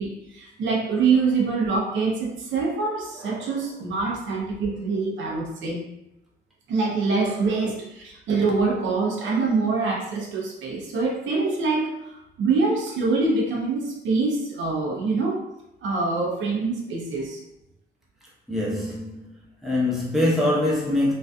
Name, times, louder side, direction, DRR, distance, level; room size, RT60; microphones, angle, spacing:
voice 1, 0.0-5.8 6.7-15.4 15.8-17.4, right 4 dB, 75° right, -2 dB, 0.6 m, -25 dB
voice 2, 3.1-3.6 4.6-4.8 7.2-7.5 9.2-9.6 18.5-19.3 19.6-21.1, left 1 dB, ahead, -7 dB, 0.9 m, -25 dB
2.5 x 2.3 x 2.3 m, 0.85 s
cardioid pair, 90°, 20 cm